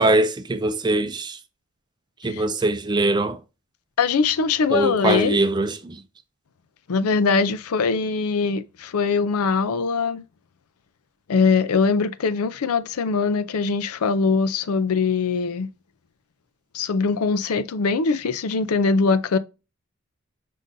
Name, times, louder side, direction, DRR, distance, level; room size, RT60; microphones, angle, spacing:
voice 1, 0.0-1.4 2.2-3.4 4.7-6.0, right 2 dB, 20° right, 0.4 m, -22 dB
voice 2, 4.0-5.4 6.9-10.2 11.3-15.7 16.7-19.4, left 4 dB, 85° left, 0.5 m, -22 dB
5.3 x 3.7 x 2.6 m
head